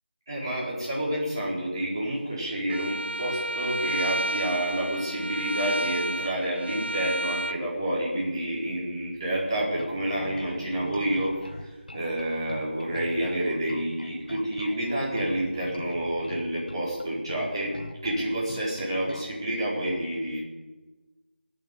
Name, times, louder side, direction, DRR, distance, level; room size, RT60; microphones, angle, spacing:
voice 1, 0.3-17.8 18.0-20.4, right 1 dB, 25° right, -7 dB, 4.6 m, -29 dB
Bowed string instrument, 2.7-7.6, right 1 dB, 70° right, 0.7 m, -31 dB
Bass guitar, 9.8-19.4, left 1 dB, 50° left, 1.5 m, -42 dB
17.0 x 9.1 x 8.3 m, 1.2 s
figure-of-eight pair, 180°, 6 cm